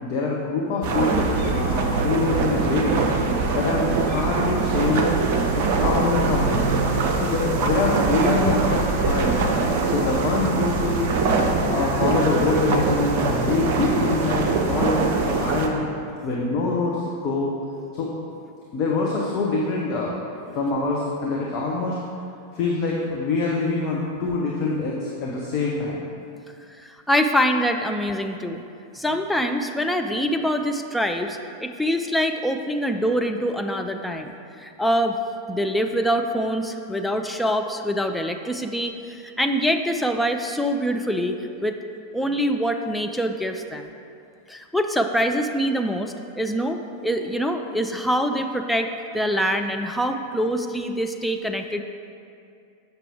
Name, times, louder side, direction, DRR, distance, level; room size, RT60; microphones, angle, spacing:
voice 1, 0.0-3.0 3.5-5.1 5.6-6.7 7.2-9.4 9.9-11.1 11.7-15.8 16.2-17.5 17.9-18.1 18.7-20.2 20.5-22.0 22.5-26.0, left 3 dB, 40° left, -3 dB, 0.8 m, -25 dB
sound 1, 0.8-15.7, right 4 dB, 45° right, 0.7 m, -23 dB
voice 2, 26.8-28.6 28.9-35.2 35.5-41.8 42.1-43.9 44.5-51.8, equal, 5° left, 5 dB, 0.4 m, -24 dB
7.3 x 5.6 x 3.5 m, 2.5 s
figure-of-eight pair, 90°, 0 cm